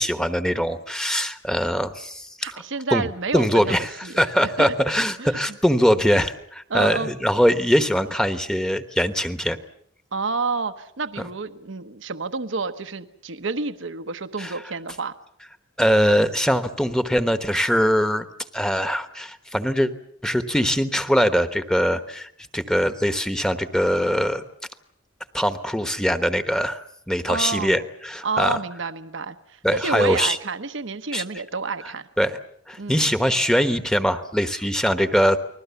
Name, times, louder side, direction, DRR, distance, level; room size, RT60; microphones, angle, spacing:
voice 1, 0.0-2.6 2.9-3.0 3.3-3.9 4.2-9.6 14.4-14.5 15.8-18.3 18.5-19.9 20.2-24.4 25.3-28.6 29.6-30.4 31.1-31.2 32.2-32.4 32.7-35.4, equal, 5° left, 10 dB, 1.2 m, -22 dB
voice 2, 2.4-4.7 5.2-5.4 6.7-7.1 10.1-15.1 27.3-27.8 28.2-32.1 32.8-33.0, right 4 dB, 65° right, 10 dB, 1.0 m, -29 dB
29.5 x 20.5 x 7.1 m, 0.66 s
head